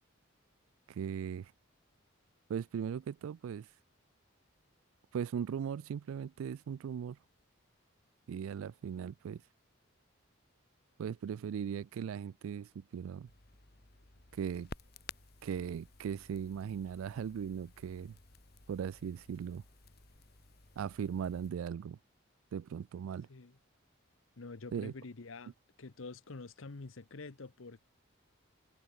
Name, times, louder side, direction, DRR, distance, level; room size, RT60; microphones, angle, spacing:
voice 1, 0.9-1.5 2.5-3.7 5.1-7.2 8.3-9.4 11.0-13.3 14.4-14.7 15.4-18.1 18.7-19.6 20.8-22.0 22.5-23.3 24.7-24.9, right 7 dB, 80° right, 0.3 m, -38 dB
Crackle, 13.3-21.5, left 4 dB, 45° left, 1.8 m, -55 dB
voice 2, 24.4-25.5 25.8-27.8, left 3 dB, 70° left, 0.9 m, -47 dB
head